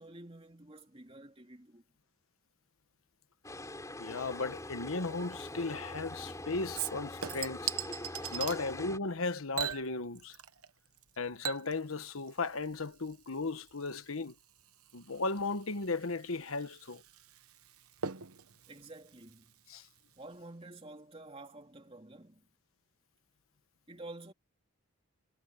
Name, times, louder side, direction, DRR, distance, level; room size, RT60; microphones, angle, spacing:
voice 1, 0.0-1.8 8.5-8.7 18.7-19.6 20.2-22.4 23.9-24.3, right 2 dB, 25° right, 3.0 m, -50 dB
sound 1, 3.4-9.0, left 1 dB, 15° left, 5.3 m, -43 dB
voice 2, 4.0-7.7 8.3-10.4 11.2-14.3 14.9-17.0 19.7-19.8, left 3 dB, 75° left, 1.2 m, -36 dB
Chink clink / Liquid, 6.7-8.6 9.5-10.7 11.0-20.0 20.3-20.4, right 10 dB, 90° right, 1.1 m, -42 dB
head